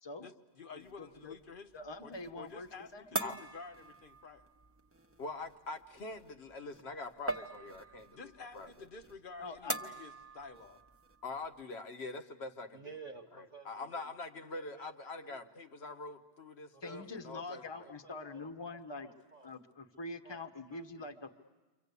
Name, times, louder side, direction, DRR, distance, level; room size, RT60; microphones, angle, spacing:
voice 1, 0.2-4.5 8.1-10.8, left 4 dB, 50° left, 8 dB, 1.2 m, -51 dB
voice 2, 0.7-1.3 1.7-3.0 9.4-9.8 16.8-19.1 19.4-21.4, left 3 dB, 25° left, 6 dB, 1.1 m, -45 dB
sound 1, 0.8-11.6, right 2 dB, 15° right, 0.9 m, -44 dB
voice 3, 5.2-8.7 11.2-12.8 13.6-17.6, left 3 dB, 70° left, 7 dB, 1.5 m, -44 dB
voice 4, 12.7-14.1 14.4-14.8 15.2-15.4 16.7-17.3 17.8-19.5 20.2-20.4 20.7-21.0, right 4 dB, 35° right, 1 dB, 1.3 m, -54 dB
29.0 x 25.0 x 8.3 m, 1.2 s
omnidirectional pair, 1.1 m